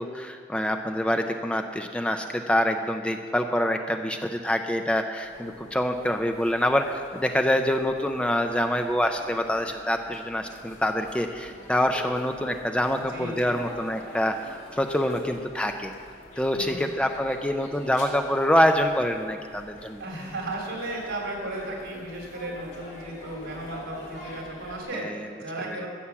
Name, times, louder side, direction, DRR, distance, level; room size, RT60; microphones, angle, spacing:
voice 1, 0.0-14.3 14.7-15.9 16.4-20.0 24.9-25.3, equal, 5° left, 5 dB, 0.5 m, -26 dB
sound 1, 5.2-24.8, left 1 dB, 85° left, 3.8 m, -46 dB
voice 2, 13.1-13.6 16.5-16.9 20.0-25.9, right 2 dB, 85° right, 0 dB, 3.3 m, -35 dB
14.0 x 7.2 x 7.2 m, 2.1 s
head